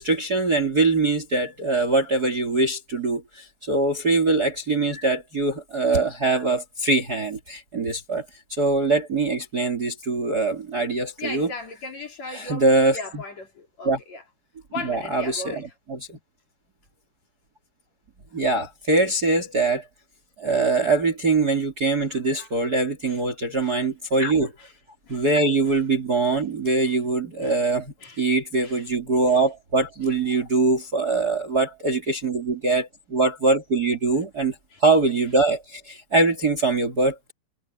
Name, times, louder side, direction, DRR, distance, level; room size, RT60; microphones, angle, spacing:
voice 1, 0.0-8.3 8.6-11.5 12.3-13.2 13.8-14.0 14.8-16.2 18.3-19.8 20.4-24.5 25.1-34.5 34.8-37.3, right 3 dB, 30° right, 2.5 m, -23 dB
voice 2, 11.2-12.7 12.9-14.2 14.7-15.7 23.0-23.2 23.6-23.7 24.6-24.7 25.0-25.2 25.6-25.8 26.2-26.4 26.8-27.0 27.4-27.6 28.0-28.2 28.6-28.8 29.3-29.4 34.7-34.8, left 3 dB, 45° left, 4.3 m, -37 dB
omnidirectional pair, 4.5 m